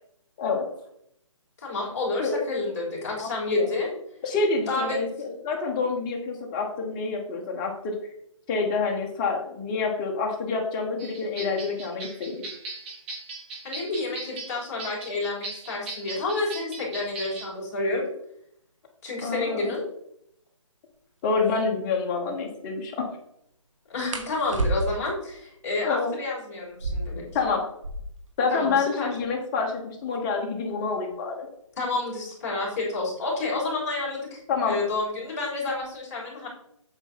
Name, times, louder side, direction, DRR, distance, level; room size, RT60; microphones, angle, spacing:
voice 1, 1.6-3.9 4.7-5.0 13.6-18.1 19.0-19.8 23.9-27.2 28.5-29.1 31.8-36.5, left 2 dB, 30° left, -5 dB, 3.7 m, -29 dB
voice 2, 3.2-3.7 4.2-8.0 8.5-12.3 19.2-19.7 21.2-23.1 25.8-26.2 27.3-27.7 28.4-31.5 34.5-34.8, left 4 dB, 15° left, 1 dB, 1.0 m, -27 dB
sound 1, 11.0-17.5, right 3 dB, 20° right, 1.5 m, -39 dB
sound 2, 20.9-21.0 21.4-21.6 24.1-25.2 26.6-28.3 28.6-28.7 28.9-29.5 30.1-32.7 33.7-34.0 34.4-34.8 35.2-35.9, right 2 dB, 70° right, 1.8 m, -33 dB
8.1 x 6.5 x 4.1 m, 0.73 s
hypercardioid pair, 165°, 17 cm